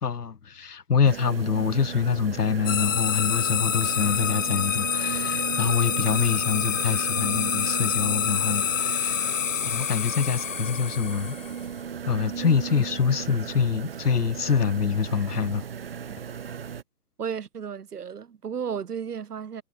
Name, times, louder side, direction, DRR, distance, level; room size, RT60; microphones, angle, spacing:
voice 1, 0.0-9.4 9.6-11.4 12.1-15.6, left 6 dB, 90° left, 1.4 m, -25 dB
sound 1, 1.0-16.8, right 7 dB, 40° right, 0.8 m, -36 dB
sound 2, 2.7-11.6, left 9 dB, 55° left, 0.7 m, -27 dB
sound 3, 4.6-13.6 13.9-15.8, right 15 dB, 25° right, 3.1 m, -54 dB
voice 2, 17.2-19.6, right 7 dB, 90° right, 1.0 m, -34 dB
hypercardioid pair, 160°, 45 cm